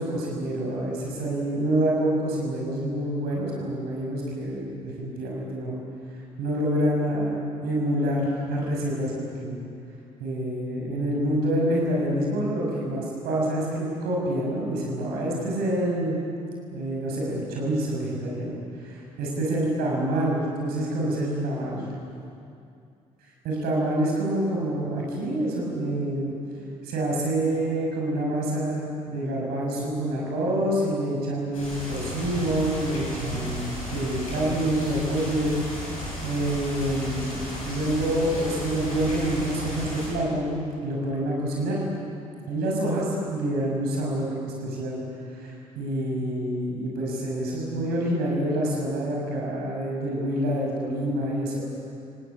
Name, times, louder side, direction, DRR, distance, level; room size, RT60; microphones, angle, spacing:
voice 1, 0.0-5.8 6.4-9.1 9.4-9.6 10.2-16.2 16.7-21.8 23.4-26.4 26.8-35.5 36.2-41.8 42.5-45.0 45.3-51.6, right 1 dB, 65° right, -3 dB, 6.8 m, -27 dB
sound 1, 31.5-40.1, left 1 dB, 85° left, 7.5 m, -34 dB
29.0 x 19.0 x 8.7 m, 2.5 s
figure-of-eight pair, 45°, 18 cm